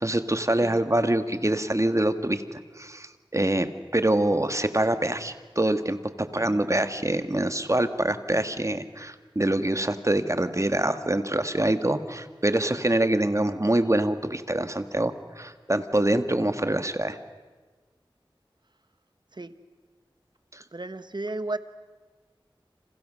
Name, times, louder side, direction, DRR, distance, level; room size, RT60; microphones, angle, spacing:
voice 1, 0.0-17.2 20.5-20.6, right 1 dB, 35° right, 9 dB, 1.6 m, -25 dB
voice 2, 20.7-21.6, right 2 dB, 50° right, 11 dB, 1.3 m, -34 dB
30.0 x 27.5 x 6.4 m, 1.4 s
wide cardioid pair, 45°, 9 cm